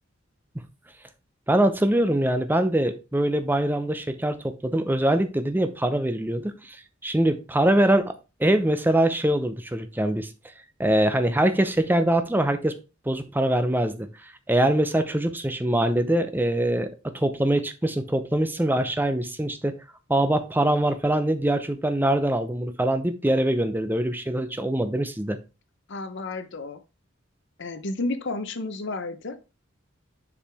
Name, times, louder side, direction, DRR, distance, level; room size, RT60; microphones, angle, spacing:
voice 1, 1.5-6.8 7.0-8.1 8.4-10.3 10.8-12.8 13.1-19.7 20.1-25.4, right 1 dB, 10° right, 9 dB, 0.7 m, -23 dB
voice 2, 25.9-26.8 27.6-29.4, left 2 dB, 60° left, 11 dB, 0.8 m, -31 dB
7.1 x 4.8 x 3.5 m, 0.30 s
head